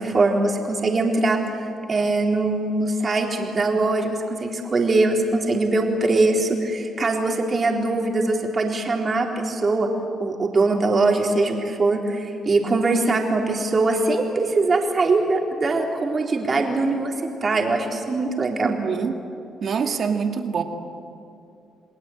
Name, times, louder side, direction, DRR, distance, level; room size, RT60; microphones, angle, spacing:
voice 1, 0.0-1.4 1.9-9.9 10.2-17.1 17.4-18.7, right 3 dB, 35° right, 1 dB, 3.9 m, -22 dB
voice 2, 18.6-19.2 19.6-20.6, right 6 dB, 55° right, 5 dB, 2.3 m, -25 dB
29.0 x 19.5 x 8.8 m, 2.6 s
cardioid pair, 90°, 0 cm